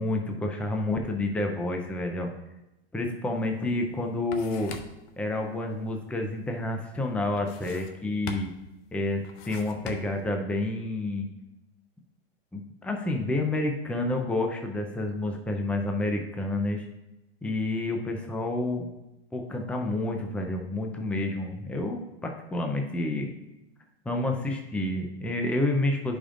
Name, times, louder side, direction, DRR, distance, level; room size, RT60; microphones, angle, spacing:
voice 1, 0.0-2.3 2.9-4.7 5.2-8.5 8.9-11.3 12.5-16.9 17.4-18.9 19.3-23.3 24.1-26.2, left 2 dB, 5° left, 3 dB, 0.6 m, -29 dB
sound 1, 3.4-3.5 3.9-5.1 7.4-8.0 8.3-8.7 9.2-10.3, left 5 dB, 55° left, 0.8 m, -41 dB
11.0 x 5.2 x 2.5 m, 0.93 s
hypercardioid pair, 125°, 30 cm